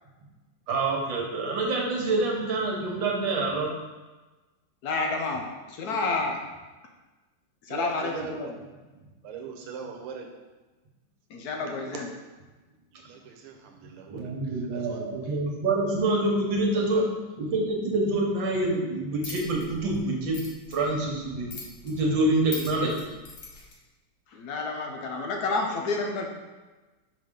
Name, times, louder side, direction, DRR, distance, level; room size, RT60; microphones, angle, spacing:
voice 1, 0.7-3.7 14.1-17.1 17.4-20.4 20.7-21.5 21.8-22.9, right 2 dB, 65° right, -1 dB, 1.7 m, -26 dB
voice 2, 4.8-6.4 7.7-8.5 11.3-12.1 24.3-26.3, left 3 dB, 70° left, 2 dB, 0.9 m, -30 dB
voice 3, 7.7-8.5 9.2-10.3 11.9-12.0 12.9-15.4 16.7-17.0, right 7 dB, 85° right, 2 dB, 1.5 m, -41 dB
sound 1, 19.2-23.7, left 4 dB, 45° left, 1.2 m, -43 dB
5.7 x 5.1 x 3.7 m, 1.2 s
omnidirectional pair, 2.4 m